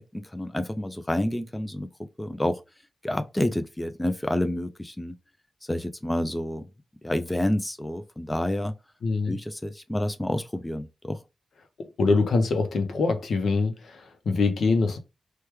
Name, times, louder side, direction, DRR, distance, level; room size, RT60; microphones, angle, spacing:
voice 1, 0.0-2.6 3.0-5.1 5.6-6.6 7.0-8.7 9.3-11.2, left 1 dB, 10° left, 0.3 m, -29 dB
voice 2, 9.0-9.4 11.8-15.0, left 3 dB, 80° left, 0.6 m, -24 dB
3.0 x 2.2 x 3.3 m
wide cardioid pair, 95°, 0 cm